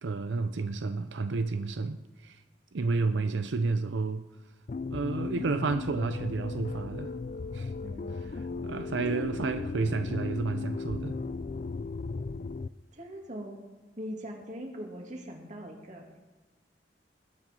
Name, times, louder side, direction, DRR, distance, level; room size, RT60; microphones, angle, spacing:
voice 1, 0.0-2.4 2.7-4.3 4.9-7.1 7.5-7.7 8.3-11.1, right 3 dB, 85° right, 9 dB, 0.6 m, -31 dB
sound 1, 4.7-12.7, left 4 dB, 40° left, 0.4 m, -36 dB
voice 2, 7.8-8.4 9.1-9.4 12.9-13.6 14.0-16.2, equal, 40° right, 1 dB, 2.5 m, -42 dB
20.5 x 9.1 x 5.3 m, 1.2 s
head